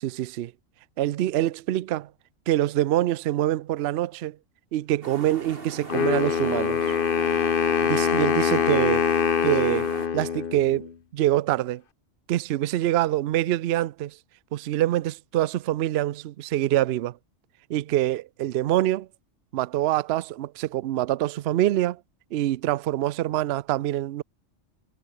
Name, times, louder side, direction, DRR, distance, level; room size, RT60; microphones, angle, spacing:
voice 1, 0.0-0.5 1.0-2.1 2.5-4.4 4.7-7.0 7.8-9.0 9.4-9.9 10.1-11.8 12.3-14.2 14.5-17.1 17.7-19.1 19.5-22.0 22.3-24.2, right 14 dB, 65° right, 0.7 m, -25 dB
sound 1, 5.0-10.1, right 3 dB, 45° right, 2.6 m, -40 dB
Wind instrument woodwind instrument, 5.9-10.9, left 7 dB, 45° left, 1.1 m, -24 dB
omnidirectional pair, 1.3 m